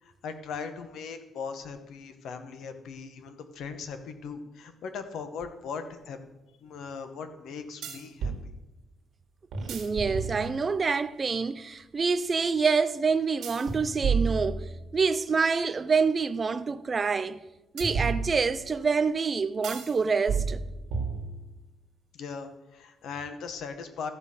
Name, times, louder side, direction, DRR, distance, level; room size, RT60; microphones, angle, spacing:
voice 1, 0.0-6.2 6.6-8.5 22.1-24.1, left 5 dB, 65° left, 1.1 m, -39 dB
sound 1, 5.4-5.5 7.8-8.4 9.5-10.8 13.4-15.1 17.8-18.8 19.6-20.0 20.3-21.6, right 5 dB, 70° right, 1.7 m, -31 dB
voice 2, 9.7-17.4 17.7-20.6, right 5 dB, 25° right, 0.4 m, -27 dB
14.0 x 5.5 x 6.5 m
cardioid pair, 175°, 0 cm